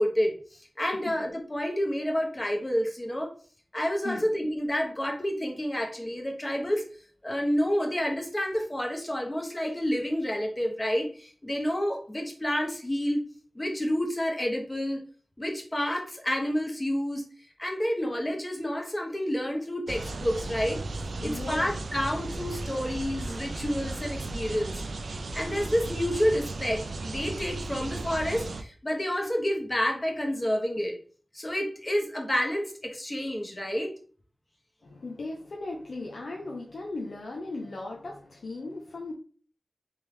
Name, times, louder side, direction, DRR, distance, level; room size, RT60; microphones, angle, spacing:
voice 1, 0.0-3.3 3.7-6.8 7.2-13.2 13.5-15.0 15.4-17.2 17.6-20.8 21.2-24.8 25.1-31.0 31.3-33.9, equal, 25° left, 1 dB, 1.1 m, -29 dB
sound 1, 19.9-28.6, right 2 dB, 90° right, 0.4 m, -35 dB
voice 2, 21.2-21.8 24.7-24.9 34.8-39.1, left 2 dB, 90° left, -1 dB, 0.6 m, -38 dB
3.5 x 3.4 x 3.2 m, 0.42 s
wide cardioid pair, 65°, 0 cm